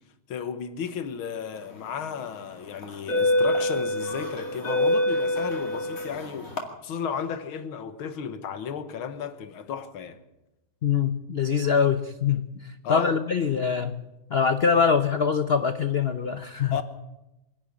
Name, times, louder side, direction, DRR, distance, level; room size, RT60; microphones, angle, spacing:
voice 1, 0.3-6.5 6.8-10.2 12.8-13.2 16.7-16.8, left 7 dB, 85° left, 2.1 m, -34 dB
sound 1, 1.8-2.1 2.8-6.6, left 1 dB, 40° left, 2.6 m, -26 dB
voice 2, 10.8-14.0 14.3-16.8, left 6 dB, 65° left, 0.6 m, -24 dB
24.0 x 11.0 x 9.9 m
omnidirectional pair, 2.2 m